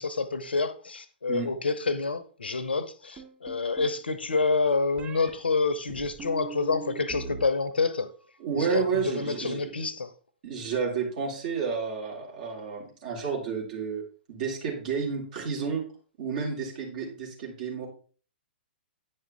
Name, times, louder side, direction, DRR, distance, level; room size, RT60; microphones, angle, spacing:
voice 1, 0.0-8.1 8.5-10.1, left 4 dB, 75° left, 1.0 m, -28 dB
sound 1, 3.2-4.0 5.0-5.3 5.9-7.4 7.7-8.3, right 6 dB, 25° right, 3.2 m, -41 dB
voice 2, 8.4-9.7 10.4-14.0 14.3-15.8 16.2-17.9, right 6 dB, 50° right, 3.2 m, -31 dB
9.5 x 5.4 x 4.6 m
figure-of-eight pair, 115°, 6 cm